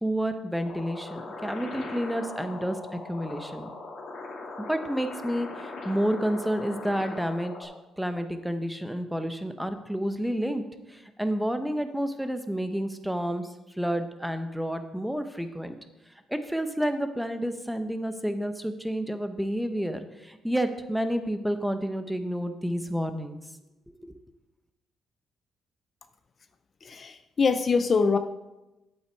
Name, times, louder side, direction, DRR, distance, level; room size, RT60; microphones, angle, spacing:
voice 1, 0.0-3.7 4.6-10.6 10.9-15.7 16.3-23.4 23.9-24.1, equal, 5° right, 8 dB, 0.8 m, -30 dB
sound 1, 0.7-7.7, left 3 dB, 70° left, 2.3 m, -40 dB
voice 2, 26.8-28.2, left 5 dB, 40° left, 9 dB, 0.5 m, -24 dB
8.4 x 8.0 x 4.6 m, 1.0 s
cardioid pair, 90°, 0 cm